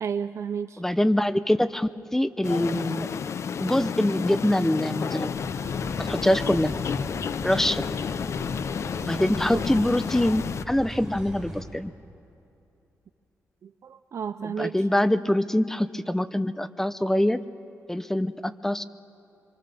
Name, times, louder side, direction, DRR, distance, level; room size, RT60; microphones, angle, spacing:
voice 1, 0.0-0.8 9.5-9.6 13.6-14.8, right 7 dB, 55° right, 11 dB, 0.5 m, -32 dB
voice 2, 0.8-3.1 3.6-5.3 6.0-6.7 7.4-7.8 9.0-11.9 14.6-17.4 17.9-18.8, left 1 dB, 5° left, 13 dB, 0.6 m, -24 dB
sound 1, 2.4-10.6, left 7 dB, 55° left, 0.5 m, -31 dB
sound 2, 5.3-11.6, right 1 dB, 10° right, 5.4 m, -39 dB
26.5 x 24.0 x 6.9 m, 2.7 s
wide cardioid pair, 125°, 6 cm